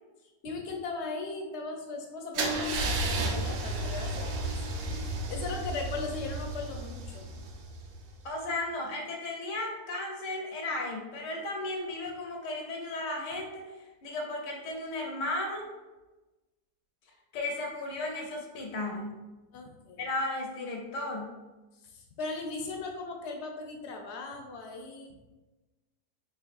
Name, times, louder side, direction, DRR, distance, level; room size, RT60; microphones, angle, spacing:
voice 1, 0.4-4.5 4.9-7.3 19.5-20.1 21.8-25.2, left 3 dB, 55° left, 2 dB, 0.8 m, -38 dB
Car / Engine starting / Idling, 2.3-8.2, right 2 dB, 75° right, 1.2 m, -33 dB
voice 2, 8.2-13.7 14.0-15.7 17.3-19.2 20.0-21.4, left 2 dB, 85° left, 0 dB, 1.6 m, -35 dB
4.5 x 3.9 x 2.5 m, 1.1 s
omnidirectional pair, 1.8 m